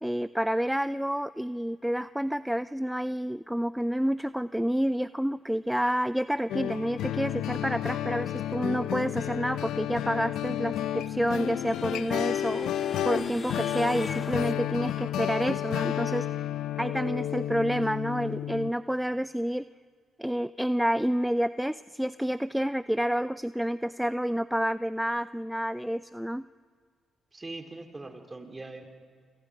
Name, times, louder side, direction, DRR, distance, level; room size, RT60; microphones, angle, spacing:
voice 1, 0.0-12.7 13.0-16.5 16.8-19.6 20.2-26.4, equal, 5° right, 15 dB, 0.5 m, -29 dB
sound 1, 6.5-18.7, left 11 dB, 80° left, 0.7 m, -31 dB
sound 2, 10.7-14.5, left 4 dB, 40° left, 1.6 m, -40 dB
voice 2, 27.3-28.8, right 2 dB, 25° right, 4 dB, 3.8 m, -41 dB
28.5 x 26.0 x 5.2 m, 2.1 s
hypercardioid pair, 50°, 0 cm